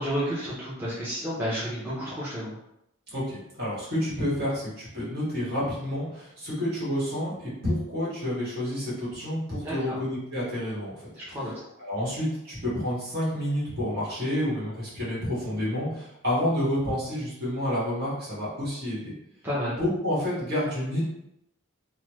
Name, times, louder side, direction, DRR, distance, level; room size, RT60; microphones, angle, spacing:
voice 1, 0.0-2.6 9.6-10.0 11.3-11.5 19.4-19.7, equal, 10° right, -10 dB, 0.6 m, -31 dB
voice 2, 3.1-11.5 11.8-19.1 19.7-21.0, left 1 dB, 50° right, -8 dB, 1.4 m, -29 dB
3.1 x 2.1 x 3.0 m, 0.81 s
head